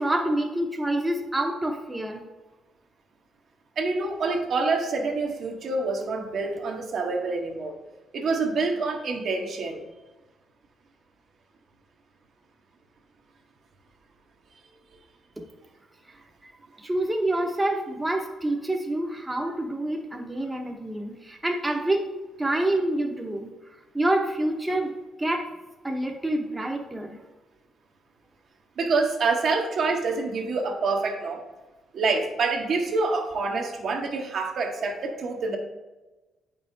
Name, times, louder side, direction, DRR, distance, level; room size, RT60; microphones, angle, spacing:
voice 1, 0.0-2.2 15.4-15.5 16.4-16.5 16.8-23.5 23.9-24.9 25.2-25.5 25.8-27.2, right 1 dB, 15° right, 1 dB, 0.8 m, -27 dB
voice 2, 3.8-7.7 8.1-9.8 28.8-31.4 31.9-35.6, right 3 dB, 60° right, 2 dB, 1.0 m, -26 dB
8.6 x 5.5 x 2.7 m, 1.1 s
cardioid pair, 90°, 0 cm